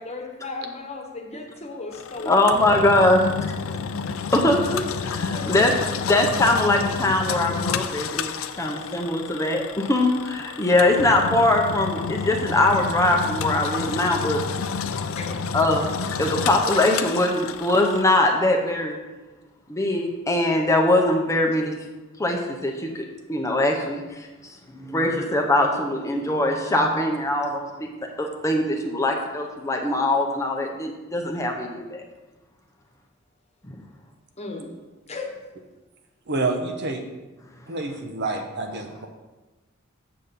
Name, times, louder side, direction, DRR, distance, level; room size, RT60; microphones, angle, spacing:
voice 1, 0.0-2.8 5.0-5.7 15.1-15.6 34.4-34.7 35.1-35.3, left 3 dB, 30° left, 2 dB, 1.2 m, -36 dB
Engine, 1.9-18.0, left 5 dB, 80° left, 0.5 m, -30 dB
voice 2, 2.2-3.5 4.3-5.7 6.1-14.4 15.5-15.9 16.2-19.0 19.7-21.7 22.2-27.9 28.2-32.0 33.7-33.8, left 1 dB, 15° left, 1 dB, 0.7 m, -22 dB
voice 3, 36.3-37.0 37.7-39.1, right 3 dB, 55° right, 4 dB, 0.9 m, -28 dB
7.5 x 4.1 x 6.8 m, 1.2 s
head